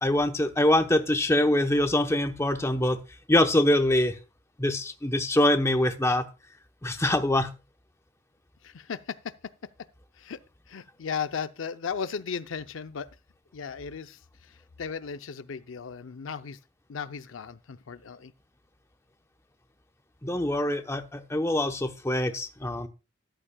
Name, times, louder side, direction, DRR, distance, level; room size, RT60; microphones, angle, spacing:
voice 1, 0.0-3.0 3.3-4.2 4.6-6.3 6.8-7.5 20.2-22.9, left 1 dB, 15° left, 0.8 m, -24 dB
voice 2, 8.6-9.5 10.2-10.4 10.7-13.1 13.5-16.6 16.9-18.3, left 6 dB, 75° left, 0.5 m, -36 dB
13.5 x 11.5 x 2.2 m
head